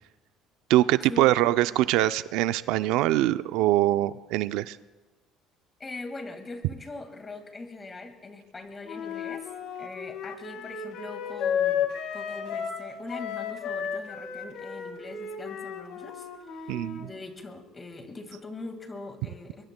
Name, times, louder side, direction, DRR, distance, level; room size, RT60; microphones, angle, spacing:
voice 1, 0.7-4.8 16.7-17.1, right 15 dB, 80° right, 14 dB, 0.4 m, -23 dB
voice 2, 5.8-9.5 9.8-19.6, left 3 dB, 20° left, 6 dB, 1.8 m, -42 dB
Wind instrument woodwind instrument, 8.8-12.8 13.1-17.0, left 8 dB, 75° left, 1.9 m, -33 dB
23.5 x 22.5 x 2.2 m, 1.2 s
cardioid pair, 130°, 0 cm